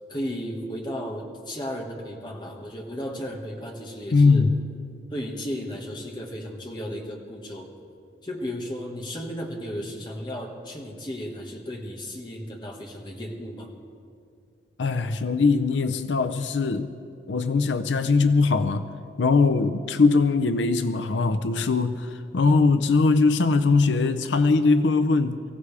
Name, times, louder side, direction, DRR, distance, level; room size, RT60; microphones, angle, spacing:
voice 1, 0.1-4.5 5.1-7.7 8.2-13.7, equal, 25° left, 0 dB, 1.7 m, -34 dB
voice 2, 4.1-4.6 14.8-16.9 17.3-18.9 19.2-25.4, left 4 dB, 90° left, 10 dB, 0.6 m, -21 dB
24.0 x 15.5 x 3.4 m, 2.4 s
head